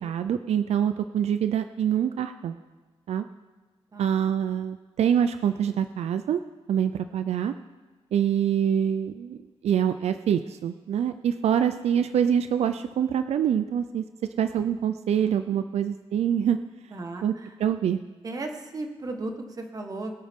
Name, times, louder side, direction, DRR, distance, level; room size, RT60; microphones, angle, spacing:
voice 1, 0.0-2.6 3.1-3.2 4.0-6.4 6.7-7.5 8.1-9.4 9.6-14.0 14.4-16.6 17.2-17.3 17.6-18.0, right 9 dB, 85° right, 10 dB, 0.5 m, -25 dB
voice 2, 16.9-17.6 18.2-20.1, right 2 dB, 35° right, 4 dB, 1.4 m, -35 dB
21.5 x 8.6 x 3.7 m, 1.3 s
wide cardioid pair, 155°, 11 cm